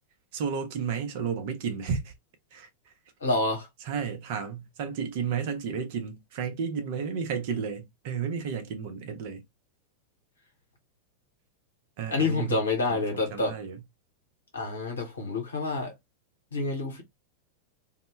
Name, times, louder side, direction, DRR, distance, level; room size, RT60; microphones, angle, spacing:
voice 1, 0.3-2.1 2.5-2.7 3.8-9.4 12.0-12.6 12.9-13.8, right 6 dB, 50° right, 0.5 m, -32 dB
voice 2, 3.2-3.7 12.1-13.6 14.5-15.9 16.5-17.0, left 3 dB, 70° left, 0.9 m, -28 dB
2.1 x 2.1 x 3.0 m
figure-of-eight pair, 90°, 0 cm